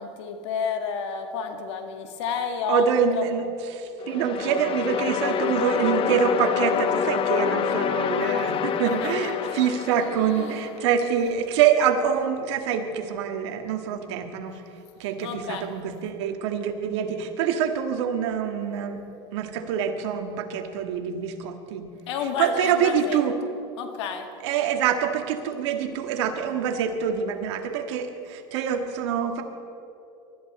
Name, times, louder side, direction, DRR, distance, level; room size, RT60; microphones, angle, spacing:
voice 1, 0.0-2.9 3.1-3.3 5.2-5.6 8.2-8.5 8.8-9.5 9.9-10.7 15.2-15.7 22.1-23.2 23.8-24.3, left 6 dB, 80° left, 5 dB, 1.9 m, -31 dB
voice 2, 2.7-14.6 15.0-19.0 19.3-21.9 22.4-23.3 24.4-29.4, right 7 dB, 75° right, 5 dB, 1.8 m, -25 dB
sound 1, 4.0-11.0, left 8 dB, 40° left, 0.9 m, -27 dB
23.0 x 13.5 x 4.3 m, 2.7 s
supercardioid pair, 115°, 15 cm